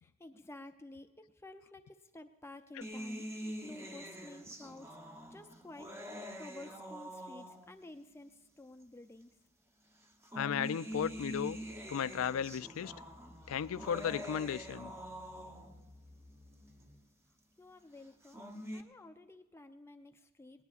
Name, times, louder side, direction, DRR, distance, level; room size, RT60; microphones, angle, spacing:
voice 1, 0.0-5.0 5.3-5.9 6.3-9.3 17.6-20.6, left 2 dB, 10° left, 0.4 m, -52 dB
sound 1, 2.8-7.9 8.8-8.9 10.0-15.9 18.0-18.8, equal, 10° right, 0.8 m, -45 dB
voice 2, 10.4-11.6 11.9-12.9 13.5-14.9, left 8 dB, 85° left, 0.4 m, -35 dB
sound 2, 10.9-17.0, left 1 dB, 30° right, 3.8 m, -58 dB
19.0 x 19.0 x 2.4 m
head